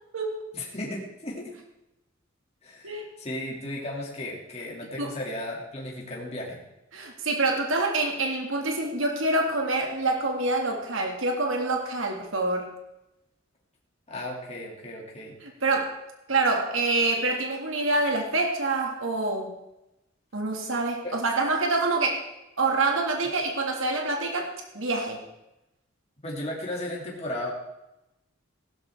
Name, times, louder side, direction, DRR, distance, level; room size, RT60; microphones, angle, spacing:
voice 1, 0.5-1.6 2.6-6.6 14.1-15.4 21.0-21.1 26.2-27.5, left 1 dB, 35° left, -3 dB, 2.4 m, -35 dB
voice 2, 6.9-12.7 15.4-15.9 16.3-19.5 20.3-22.2 22.6-24.5 24.7-25.2, right 2 dB, 90° right, 2 dB, 2.0 m, -26 dB
16.0 x 12.5 x 3.5 m, 0.91 s
head